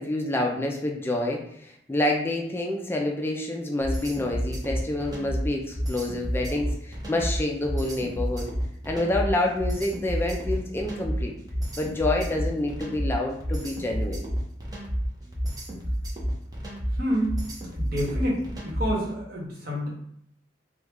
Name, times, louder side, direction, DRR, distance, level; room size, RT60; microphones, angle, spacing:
voice 1, 0.0-8.5 8.8-11.3 11.8-14.3, left 1 dB, 15° left, 0 dB, 0.3 m, -28 dB
sound 1, 3.8-19.1, equal, 20° right, 0.7 m, -30 dB
voice 2, 16.9-17.4 17.7-19.9, equal, 55° right, -4 dB, 1.1 m, -28 dB
3.0 x 2.3 x 3.5 m, 0.69 s
head